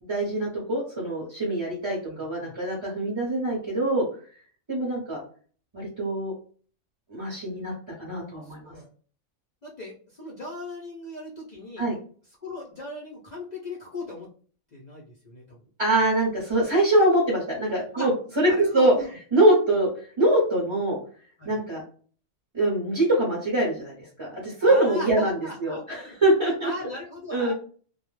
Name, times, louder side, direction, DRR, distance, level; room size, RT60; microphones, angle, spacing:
voice 1, 0.0-4.0 4.7-5.2 5.7-6.3 7.1-7.7 8.0-8.7 11.8-11.9 15.8-18.1 18.4-18.9 19.3-19.9 20.2-21.0 21.4-21.8 22.5-26.7 27.3-27.5, right 1 dB, 30° right, -4 dB, 0.6 m, -23 dB
voice 2, 2.0-2.5 8.4-8.9 9.6-11.9 12.4-14.3 14.7-15.6 17.9-18.1 18.5-19.1 21.4-21.5 24.6-26.1 26.5-27.5, left 2 dB, 55° left, -4 dB, 0.5 m, -38 dB
2.3 x 2.0 x 3.1 m, 0.43 s
omnidirectional pair, 1.4 m